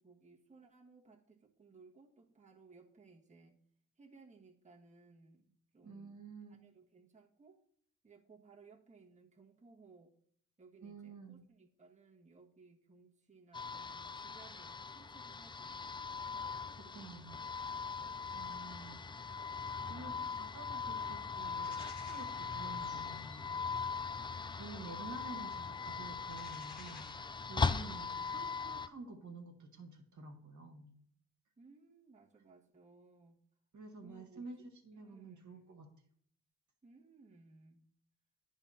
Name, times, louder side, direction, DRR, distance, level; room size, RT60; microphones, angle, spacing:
voice 1, 0.0-3.6 4.0-6.2 6.5-7.6 8.0-10.1 10.6-16.1 16.8-18.6 19.8-20.2 27.8-28.5 31.6-33.4 34.0-34.5 34.9-35.5 36.8-37.8, right 3 dB, 20° right, -2 dB, 1.4 m, -62 dB
voice 2, 5.8-6.6 10.8-11.4 16.8-17.4 18.3-23.5 24.5-27.1 27.5-31.0 33.7-34.6 34.8-35.9, right 3 dB, 50° right, 4 dB, 1.7 m, -50 dB
sound 1, 13.5-28.9, left 5 dB, 15° left, 0.4 m, -40 dB
sound 2, 21.4-27.4, left 4 dB, 50° left, 2.0 m, -60 dB
9.8 x 3.7 x 5.7 m, 0.62 s
hypercardioid pair, 50°, 38 cm